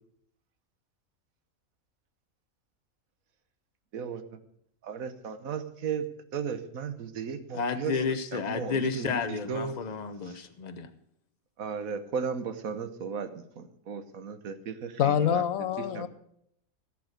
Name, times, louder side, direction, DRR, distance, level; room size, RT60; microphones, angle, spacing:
voice 1, 4.8-6.0 6.3-8.0 8.3-9.7 10.3-10.4 11.6-15.4 15.9-16.0, right 6 dB, 75° right, 10 dB, 1.5 m, -35 dB
voice 2, 7.5-10.9, left 5 dB, 35° left, 9 dB, 0.9 m, -31 dB
voice 3, 15.0-16.1, left 9 dB, 70° left, 12 dB, 1.3 m, -25 dB
16.5 x 6.8 x 6.6 m, 0.72 s
omnidirectional pair, 1.5 m